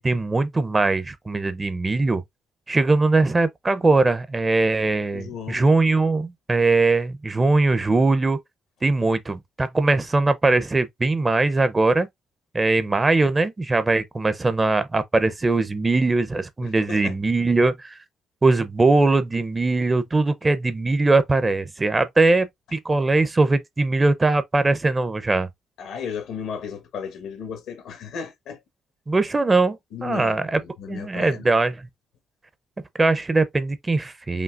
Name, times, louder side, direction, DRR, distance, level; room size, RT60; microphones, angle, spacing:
voice 1, 0.0-2.2 2.7-8.4 8.8-12.1 12.5-18.0 18.4-25.5 29.1-30.6 30.9-31.9 33.0-34.4, right 3 dB, 25° right, 0.6 m, -21 dB
voice 2, 5.1-5.8 16.6-17.2 25.8-28.6 29.9-31.5, left 7 dB, 85° left, 1.3 m, -35 dB
5.2 x 2.8 x 2.4 m
cardioid pair, 90°, 0 cm